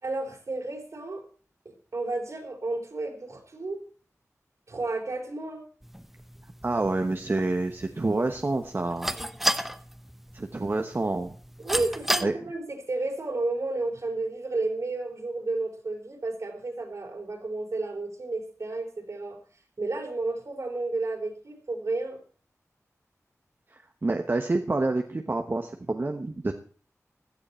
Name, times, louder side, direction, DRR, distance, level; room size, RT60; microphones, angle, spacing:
voice 1, 0.0-1.2 1.6-3.8 4.7-5.6 11.6-19.4 19.8-22.2, right 2 dB, 65° right, 2 dB, 4.2 m, -32 dB
sound 1, 5.8-12.2, equal, 5° right, 0.8 m, -34 dB
voice 2, 6.6-9.2 10.3-11.3 12.2-12.3 23.7-26.5, right 2 dB, 40° right, 5 dB, 1.1 m, -28 dB
16.0 x 12.0 x 4.4 m, 0.42 s
wide cardioid pair, 90°, 6 cm